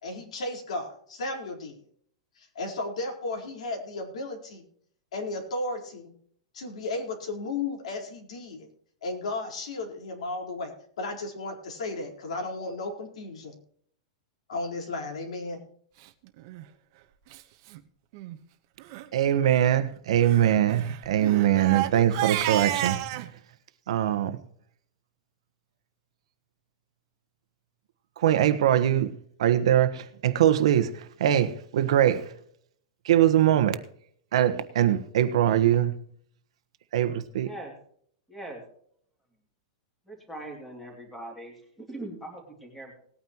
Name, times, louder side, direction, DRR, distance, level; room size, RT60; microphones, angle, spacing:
voice 1, 0.0-1.8 2.4-4.6 5.1-6.1 6.5-8.7 9.0-13.6 14.5-15.6, left 2 dB, 85° left, 4.2 m, -34 dB
Crying sobbing, 16.4-16.6 17.3-17.4 17.7-17.8 18.1-18.4 18.8-19.0 20.2-23.3, right 14 dB, 35° right, 1.1 m, -31 dB
voice 2, 19.1-23.3 23.9-24.4 28.2-32.3 33.0-33.8 34.3-35.9 36.9-37.5, right 11 dB, 65° right, 1.2 m, -22 dB
voice 3, 37.4-37.7 38.3-38.6 40.1-42.9, right 1 dB, 5° left, 2.8 m, -41 dB
19.5 x 9.4 x 3.0 m
supercardioid pair, 175°, 3 cm